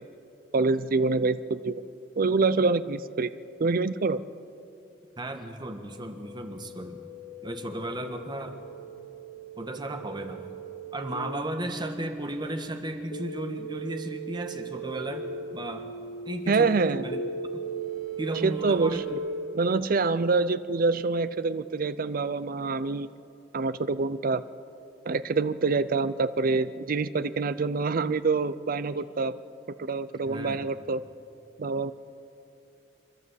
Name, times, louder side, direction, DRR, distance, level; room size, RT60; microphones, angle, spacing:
voice 1, 0.5-1.8 2.2-3.3 3.6-4.2 16.5-17.0 18.4-19.2 19.5-23.1 23.5-24.4 25.1-29.4 29.8-31.0 31.6-31.9, right 4 dB, 50° right, 14 dB, 0.5 m, -26 dB
voice 2, 5.2-7.1 7.4-8.6 9.6-10.5 10.9-15.2 15.5-15.9 16.2-16.8 17.0-17.2 17.5-17.6 18.2-19.1 30.3-30.7, right 1 dB, 25° right, 6 dB, 1.4 m, -35 dB
sound 1, 5.9-19.1, right 4 dB, 55° left, 2.9 m, -38 dB
27.0 x 12.0 x 8.2 m, 2.7 s
head